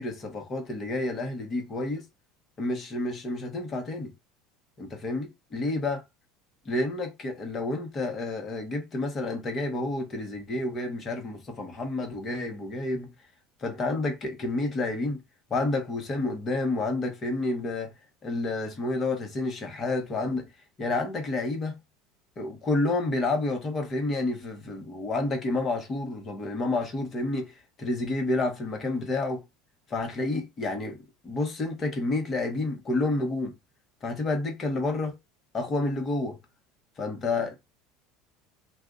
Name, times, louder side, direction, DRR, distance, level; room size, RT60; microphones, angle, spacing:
voice 1, 0.0-2.0 2.6-4.1 4.8-6.0 6.6-13.1 13.6-15.2 15.5-17.9 18.2-20.5 20.8-21.8 22.4-29.4 29.9-31.0 31.2-33.5 34.0-35.2 35.5-36.4 37.0-37.6, left 2 dB, 35° left, 1.3 m, -29 dB
2.7 x 2.4 x 3.7 m
hypercardioid pair, 80°, 0 cm